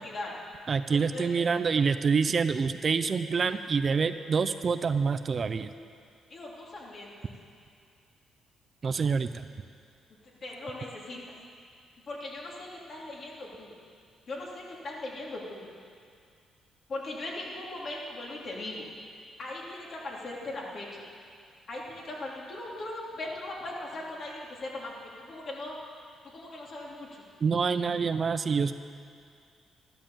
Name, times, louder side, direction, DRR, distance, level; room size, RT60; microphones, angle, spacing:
voice 1, 0.0-0.3 0.9-1.4 1.7-1.8 6.3-7.3 10.4-11.2 12.0-13.7 14.3-15.7 16.9-18.8 19.4-21.0 21.7-25.8 26.2-27.2, left 2 dB, 50° left, -3 dB, 3.2 m, -39 dB
voice 2, 0.7-5.7 8.8-9.5 27.4-28.7, right 5 dB, 40° right, 10 dB, 0.6 m, -26 dB
13.0 x 11.5 x 7.4 m, 2.3 s
cardioid pair, 90°, 0 cm